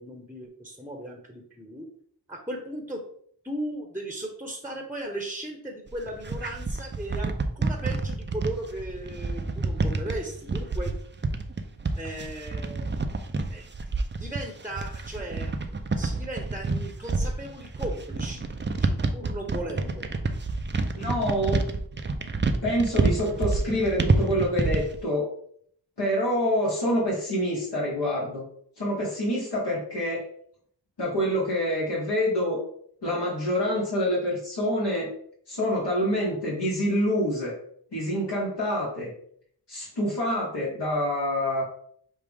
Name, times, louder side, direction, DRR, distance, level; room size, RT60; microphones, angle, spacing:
voice 1, 0.0-1.9 2.3-3.0 3.4-10.9 12.0-12.9 13.5-13.6 14.2-18.4 18.8-20.1, right 1 dB, 5° right, 2 dB, 0.9 m, -37 dB
sound 1, 5.9-25.0, right 3 dB, 25° right, 0.5 m, -28 dB
voice 2, 20.9-21.7 22.6-25.3 26.0-28.4 28.8-30.2 31.0-32.6 33.0-35.1 35.5-37.6 37.9-39.1 39.7-41.6, equal, 65° left, -6 dB, 1.6 m, -26 dB
6.2 x 2.4 x 3.5 m, 0.63 s
cardioid pair, 45°, 43 cm